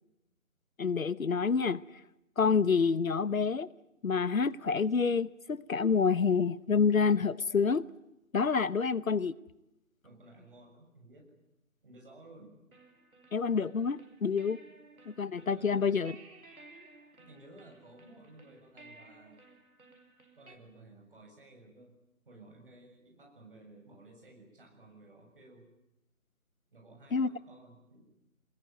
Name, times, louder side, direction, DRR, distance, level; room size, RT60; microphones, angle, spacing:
voice 1, 0.8-1.8 2.4-3.7 4.0-7.9 8.3-9.3 13.3-14.6 15.2-16.1 27.1-27.3, left 5 dB, 70° left, 1.0 m, -28 dB
voice 2, 10.0-11.3 11.8-12.5 15.5-15.8 17.2-19.4 20.3-21.9 22.3-25.6 26.7-28.0, right 2 dB, 40° right, 7.2 m, -55 dB
sound 1, 12.7-20.6, right 2 dB, 80° right, 4.8 m, -57 dB
25.5 x 21.0 x 9.2 m
figure-of-eight pair, 170°, 42 cm